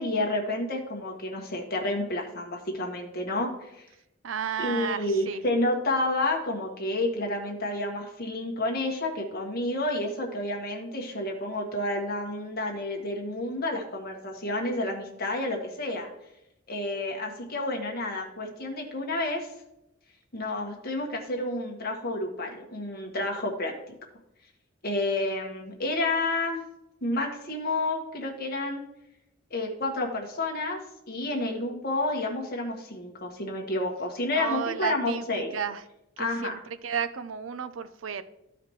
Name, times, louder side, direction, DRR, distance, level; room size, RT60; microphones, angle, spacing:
voice 1, 0.0-3.8 4.6-16.1 16.7-19.5 20.3-23.7 24.8-26.6 27.0-28.8 29.5-30.8 31.1-35.6 36.2-36.6, left 2 dB, 50° left, 1 dB, 1.6 m, -30 dB
voice 2, 4.2-5.4 34.3-35.8 36.2-38.2, right 7 dB, 85° right, 12 dB, 0.5 m, -32 dB
14.0 x 4.9 x 3.1 m, 0.86 s
head